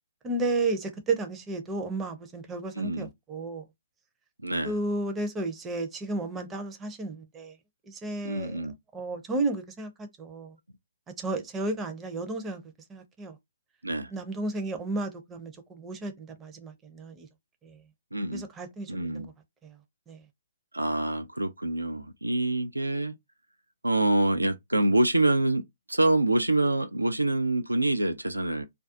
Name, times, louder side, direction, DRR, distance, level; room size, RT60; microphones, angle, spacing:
voice 1, 0.2-3.6 4.6-7.5 7.9-8.7 8.9-10.6 11.2-12.6 12.9-13.4 14.1-17.3 17.6-17.8 18.3-19.3 19.6-19.7 20.1-20.2, right 2 dB, 15° right, 0.5 m, -33 dB
voice 2, 2.8-3.1 4.4-4.7 8.2-8.7 13.8-14.1 18.1-18.5 18.9-19.3 20.7-23.1 23.8-28.7, right 2 dB, 85° right, 0.4 m, -26 dB
2.3 x 2.3 x 2.5 m
figure-of-eight pair, 130°, 0 cm